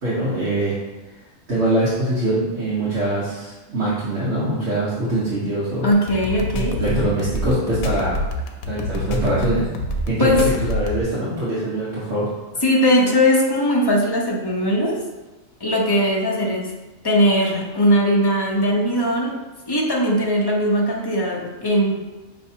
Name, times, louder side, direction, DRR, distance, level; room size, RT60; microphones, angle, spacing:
voice 1, 0.0-0.7 1.5-5.9 6.7-8.2 8.6-9.6 10.1-10.4 10.7-12.3, right 1 dB, 60° right, -10 dB, 1.5 m, -23 dB
voice 2, 5.8-6.8 10.2-10.5 12.6-15.0 15.6-16.7 17.0-19.4 19.7-22.0, equal, 30° left, -2 dB, 0.5 m, -19 dB
sound 1, 5.9-11.0, left 1 dB, 90° left, 1.0 m, -26 dB
5.4 x 3.2 x 2.7 m, 1.1 s
omnidirectional pair, 1.4 m